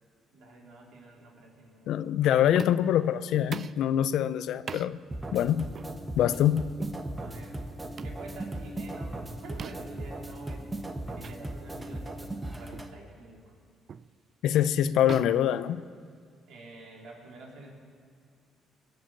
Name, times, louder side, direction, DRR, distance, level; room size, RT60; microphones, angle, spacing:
voice 1, 0.3-2.0 7.2-7.6 8.0-10.7 11.1-13.5 16.5-17.7, right 2 dB, 75° right, -1 dB, 3.4 m, -48 dB
voice 2, 1.9-5.0 5.3-5.7 6.2-6.6 14.4-15.8, left 10 dB, 75° left, 15 dB, 0.5 m, -24 dB
sound 1, 2.5-3.0 3.5-3.9 4.7-4.9 5.7-5.9 6.8-7.0 8.0-8.2 9.6-10.0 11.2-11.4 11.8-12.0 12.7-13.0 13.9-14.1 15.1-16.3, right 6 dB, 50° right, 0.4 m, -41 dB
sound 2, 5.1-12.9, right 1 dB, 20° right, 1.4 m, -38 dB
21.0 x 7.9 x 8.7 m, 2.1 s
supercardioid pair, 70°, 0 cm